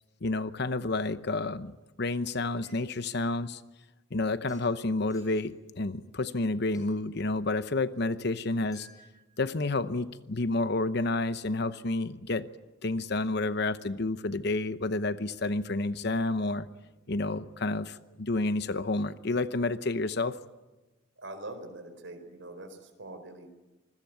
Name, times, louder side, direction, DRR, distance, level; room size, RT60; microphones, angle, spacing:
voice 1, 0.2-3.6 4.1-8.9 9.4-12.5 12.8-16.7 17.1-20.4, left 2 dB, 60° left, 12 dB, 0.9 m, -30 dB
sound 1, 1.8-2.1 2.6-3.2 4.5-4.7 5.1-5.5 6.0-6.1 6.7-6.9 8.7-9.4 10.0-10.1, left 1 dB, 20° left, 7.6 m, -57 dB
voice 2, 21.2-23.5, right 2 dB, 80° right, 6 dB, 4.4 m, -43 dB
26.5 x 21.0 x 9.3 m, 1.1 s
head